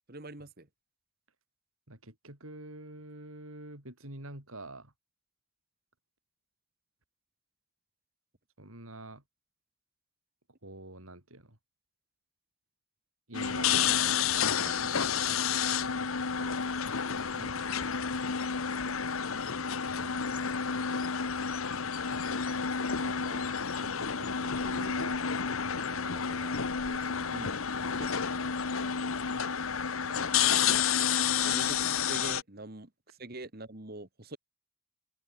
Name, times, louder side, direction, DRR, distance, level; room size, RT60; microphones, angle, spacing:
voice 1, 0.1-0.7 14.8-15.1 17.4-17.7 27.3-27.5 28.0-28.2 31.4-34.4, right 2 dB, 45° right, 2.1 m, -44 dB
voice 2, 1.9-4.9 8.6-9.2 10.6-11.6 13.3-14.1 14.6-16.7 17.1-17.4 19.9-20.3 23.0-25.2 25.6-27.5 28.6-28.8, right 2 dB, 85° right, 6.6 m, -47 dB
sound 1, 13.3-32.4, left 7 dB, 80° left, 1.1 m, -30 dB
open air
head